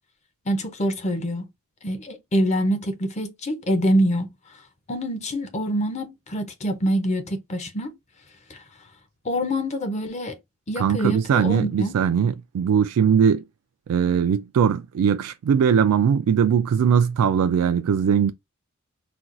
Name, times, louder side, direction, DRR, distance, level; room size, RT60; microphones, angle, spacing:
voice 1, 0.5-1.5 1.8-4.6 4.9-8.0 8.5-8.6 9.2-10.4 10.7-11.9, equal, 30° left, 0.6 m, -25 dB
voice 2, 10.8-13.4 13.9-18.3, right 7 dB, 85° right, 0.3 m, -20 dB
4.2 x 2.3 x 2.4 m
head